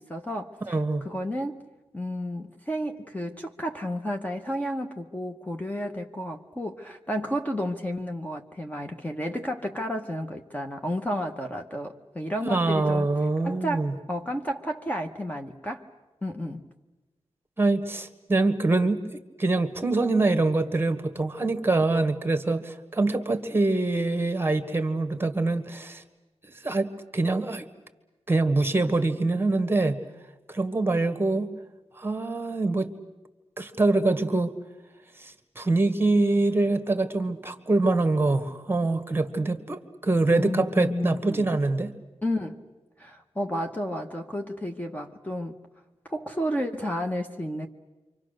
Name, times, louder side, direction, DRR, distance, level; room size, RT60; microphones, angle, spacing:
voice 1, 0.0-0.8 1.0-1.6 1.9-13.1 13.4-15.8 16.2-16.7 40.3-41.5 42.2-42.6 43.0-45.6 46.0-47.7, equal, 15° left, 4 dB, 1.0 m, -32 dB
voice 2, 0.7-1.1 12.4-13.9 17.6-26.0 26.6-27.6 28.3-30.0 30.5-31.5 32.0-32.9 33.6-34.5 35.2-41.9, right 2 dB, 20° right, 9 dB, 1.5 m, -24 dB
28.5 x 25.0 x 6.6 m, 1.1 s
wide cardioid pair, 110°, 11 cm